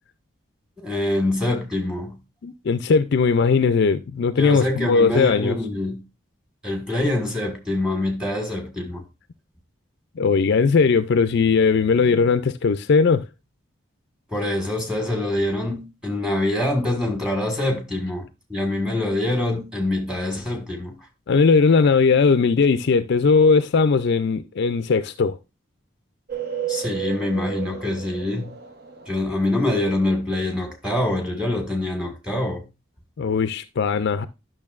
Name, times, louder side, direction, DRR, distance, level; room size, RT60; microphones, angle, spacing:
voice 1, 0.8-2.2 4.4-6.0 6.6-9.0 14.3-18.2 18.5-20.9 26.7-28.5 29.1-32.6, left 1 dB, 5° right, 1.7 m, -25 dB
voice 2, 2.4-5.6 10.2-13.2 21.3-25.4 33.2-34.3, left 5 dB, 55° left, 0.4 m, -19 dB
sound 1, 26.3-29.9, right 9 dB, 50° right, 0.9 m, -33 dB
10.5 x 6.2 x 2.4 m
head